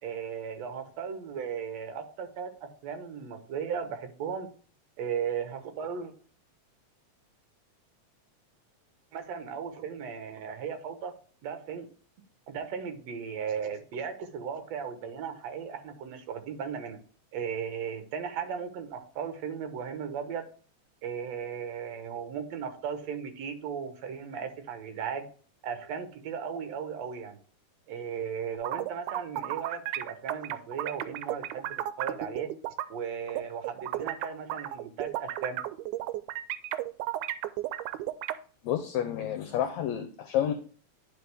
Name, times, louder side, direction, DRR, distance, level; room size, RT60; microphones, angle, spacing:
voice 1, 0.0-4.5 5.0-6.1 9.1-11.1 11.4-11.9 12.5-17.0 17.3-20.5 21.0-25.3 25.6-27.4 27.9-32.5 32.9-35.6, right 7 dB, 65° right, 7 dB, 2.1 m, -36 dB
sound 1, 28.5-32.9 33.3-38.3, right 14 dB, 90° right, 2.1 m, -33 dB
voice 2, 38.6-40.5, left 10 dB, 75° left, 6 dB, 1.9 m, -29 dB
10.5 x 4.5 x 3.4 m, 0.41 s
omnidirectional pair, 3.5 m